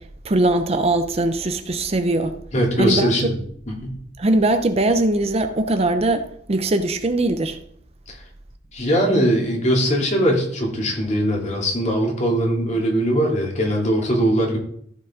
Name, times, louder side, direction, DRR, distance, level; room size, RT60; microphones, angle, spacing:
voice 1, 0.2-2.4 2.8-3.1 4.2-7.6, right 2 dB, 35° right, 0.7 m, -20 dB
voice 2, 2.5-4.0 8.1-8.2 8.7-14.6, equal, 40° left, 2.6 m, -21 dB
14.5 x 5.3 x 3.7 m
head